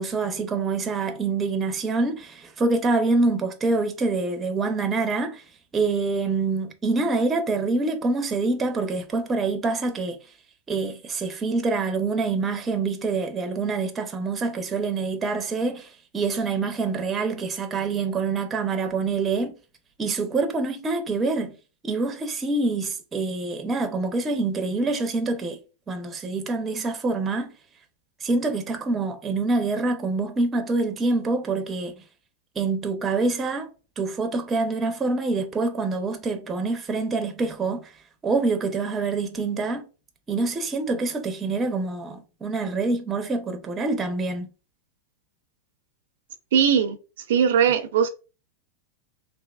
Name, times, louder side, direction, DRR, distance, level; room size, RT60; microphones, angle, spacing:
voice 1, 0.0-5.4 5.7-10.2 10.7-19.5 20.0-21.5 21.8-25.6 25.9-27.5 28.2-32.0 32.6-33.7 34.0-37.9 38.2-39.8 40.3-44.5, right 3 dB, 15° right, 0.5 m, -26 dB
voice 2, 46.5-47.0 47.3-48.1, right 8 dB, 75° right, 0.4 m, -19 dB
3.4 x 2.5 x 2.3 m
supercardioid pair, 145°, 0 cm